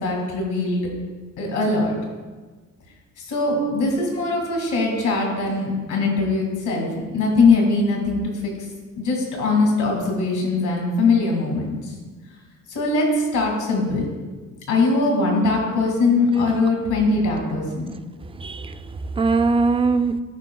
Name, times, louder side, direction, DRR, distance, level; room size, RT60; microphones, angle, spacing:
voice 1, 0.0-0.8 1.4-1.9 3.3-8.5 9.0-11.8 12.7-13.1 13.3-14.1 14.7-17.9, left 3 dB, 90° left, 1 dB, 2.0 m, -21 dB
voice 2, 17.9-20.2, right 4 dB, 20° right, 10 dB, 0.3 m, -22 dB
14.0 x 4.9 x 2.3 m, 1.4 s
cardioid pair, 90°, 30 cm